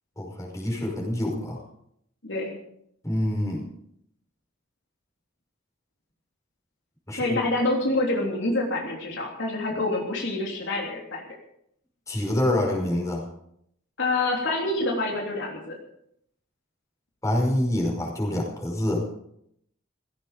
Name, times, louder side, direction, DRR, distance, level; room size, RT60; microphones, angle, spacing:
voice 1, 0.2-1.6 3.0-3.7 7.1-7.4 12.1-13.3 17.2-19.0, left 1 dB, 15° left, -1 dB, 5.4 m, -26 dB
voice 2, 7.2-11.2 14.0-15.8, left 2 dB, 65° left, -1 dB, 3.5 m, -27 dB
17.0 x 16.0 x 5.1 m, 0.73 s
head